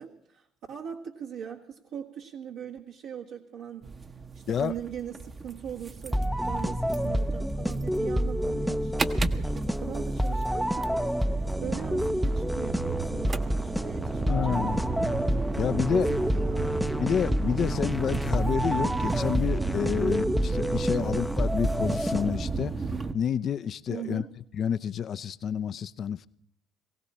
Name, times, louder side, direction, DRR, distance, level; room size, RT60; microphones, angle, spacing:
voice 1, 0.0-3.9 4.3-14.9 15.9-16.8 20.9-21.2 23.9-24.3, right 8 dB, 70° right, 1.6 m, -40 dB
sound 1, 3.8-23.1, right 4 dB, 30° right, 1.0 m, -34 dB
sound 2, 6.1-22.6, equal, ahead, 0.6 m, -28 dB
voice 2, 14.3-14.8 15.6-16.1 17.0-22.7 23.1-24.2 24.6-26.3, left 8 dB, 50° left, 0.6 m, -29 dB
19.5 x 17.0 x 4.3 m
hypercardioid pair, 65°, 0 cm